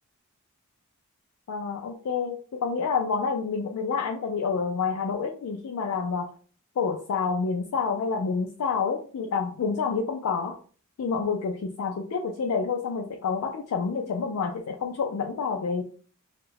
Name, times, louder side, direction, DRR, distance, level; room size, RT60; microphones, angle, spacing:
voice 1, 1.5-6.3 6.8-10.6 11.0-15.8, left 5 dB, 80° left, 2 dB, 0.4 m, -28 dB
2.3 x 2.1 x 3.1 m, 0.42 s
head